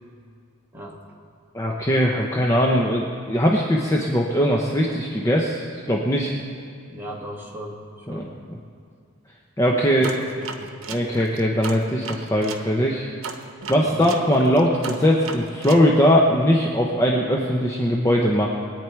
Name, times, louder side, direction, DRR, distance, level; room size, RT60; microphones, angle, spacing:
voice 1, 1.5-6.3 8.1-8.3 9.6-10.2 10.9-13.1 13.7-18.5, equal, 15° left, -1 dB, 0.9 m, -20 dB
voice 2, 6.9-8.3 9.9-10.7 13.8-14.1, equal, 10° right, -2 dB, 1.9 m, -37 dB
sound 1, 10.0-12.7 13.2-15.9, right 5 dB, 75° right, 1.0 m, -35 dB
23.0 x 9.2 x 4.6 m, 2.3 s
head